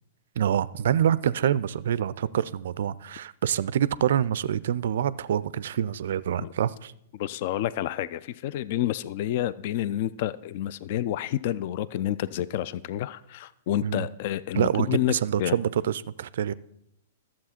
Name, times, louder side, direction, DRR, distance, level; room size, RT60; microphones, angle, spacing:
voice 1, 0.4-6.9 13.8-14.1 14.5-16.5, right 9 dB, 60° right, 0.3 m, -26 dB
voice 2, 7.1-15.1 15.4-15.6, left 12 dB, 50° left, 0.3 m, -29 dB
12.5 x 7.4 x 4.3 m
figure-of-eight pair, 105°, 0 cm